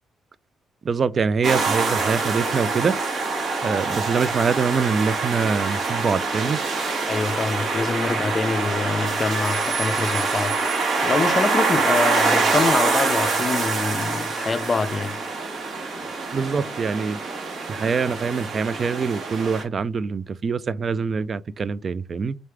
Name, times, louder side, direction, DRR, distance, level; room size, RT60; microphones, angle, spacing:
voice 1, 0.8-3.0 3.6-6.6 16.3-17.2 17.7-22.4, right 5 dB, 45° right, 0.3 m, -24 dB
sound 1, 1.4-19.6, right 3 dB, 65° right, 1.6 m, -25 dB
voice 2, 7.1-15.2, left 4 dB, 35° left, 0.4 m, -25 dB
3.8 x 3.2 x 3.3 m
cardioid pair, 90°, 0 cm